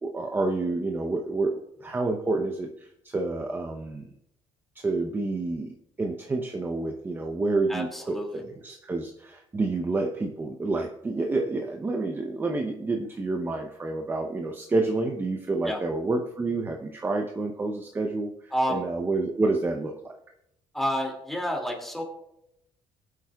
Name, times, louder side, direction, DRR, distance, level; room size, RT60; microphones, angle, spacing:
voice 1, 0.0-4.1 4.8-20.1, right 3 dB, 20° right, 3 dB, 0.8 m, -29 dB
voice 2, 7.7-8.4 15.6-15.8 18.5-18.8 20.7-22.0, equal, ahead, 0 dB, 2.4 m, -29 dB
19.5 x 8.2 x 2.4 m, 0.81 s
cardioid pair, 120°, 10 cm